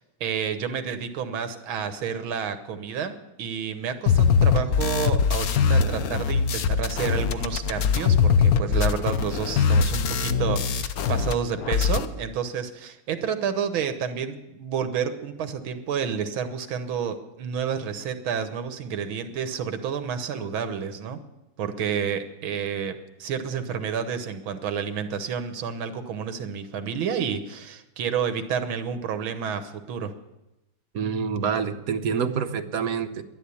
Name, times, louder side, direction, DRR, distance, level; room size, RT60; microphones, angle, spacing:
voice 1, 0.0-21.2 21.6-30.1, right 7 dB, 75° right, 9 dB, 1.8 m, -30 dB
sound 1, 4.1-11.3 11.6-12.1, left 6 dB, 65° left, 0.9 m, -22 dB
voice 2, 30.9-33.2, right 6 dB, 55° right, 7 dB, 1.0 m, -27 dB
11.5 x 11.0 x 8.4 m, 0.93 s
omnidirectional pair, 2.3 m